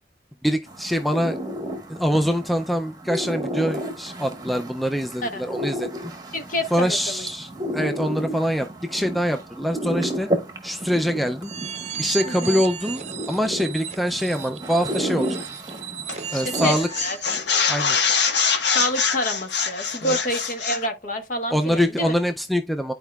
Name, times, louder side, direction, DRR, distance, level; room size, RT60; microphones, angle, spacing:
voice 1, 0.4-1.4 1.9-6.1 6.7-10.3 10.6-11.5 12.0-13.0 13.3-15.4 16.3-16.9 17.7-18.0 20.0-20.2 21.5-22.9, equal, ahead, 0.3 m, -24 dB
sound 1, 0.7-16.7, right 1 dB, 20° right, 1.1 m, -32 dB
voice 2, 6.3-7.3 12.3-12.6 16.3-16.8 17.0-17.2 18.7-22.1, left 1 dB, 45° left, 1.2 m, -28 dB
sound 2, 11.4-17.2, right 8 dB, 40° right, 0.8 m, -34 dB
sound 3, 16.1-16.3 16.6-20.9, left 6 dB, 75° left, 1.3 m, -24 dB
12.0 x 4.6 x 2.3 m
head